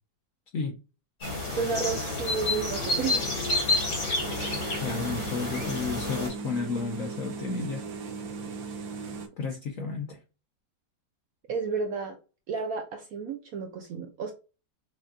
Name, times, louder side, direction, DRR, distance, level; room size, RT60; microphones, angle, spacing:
sound 1, 1.2-6.3, left 2 dB, 90° left, 3.1 m, -29 dB
voice 1, 1.5-3.3 8.5-8.6 11.5-12.2 12.5-14.3, right 5 dB, 70° right, 0.9 m, -32 dB
sound 2, 4.2-9.3, right 4 dB, 90° right, 1.5 m, -38 dB
voice 2, 4.8-7.8 9.4-10.2, left 4 dB, 70° left, 0.8 m, -32 dB
6.1 x 2.3 x 2.5 m
omnidirectional pair, 2.0 m